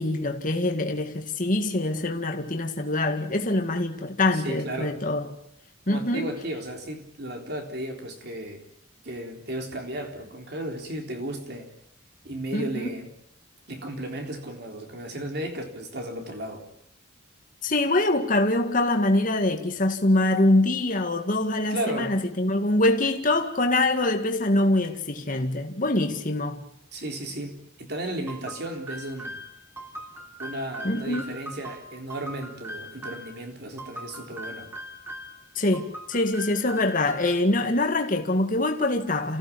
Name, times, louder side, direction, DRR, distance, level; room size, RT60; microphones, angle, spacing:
voice 1, 0.0-5.3 5.9-6.3 12.5-12.9 17.6-26.6 30.8-31.2 35.6-39.4, left 2 dB, 40° left, 2.0 m, -24 dB
voice 2, 4.3-5.0 5.9-8.6 9.0-11.7 12.2-13.1 13.7-16.6 21.7-22.2 26.9-29.4 30.4-34.7, right 1 dB, 55° right, 3.8 m, -34 dB
sound 1, 28.3-33.3 33.8-35.4 35.7-37.5, equal, 10° right, 3.7 m, -40 dB
28.5 x 16.0 x 8.7 m
head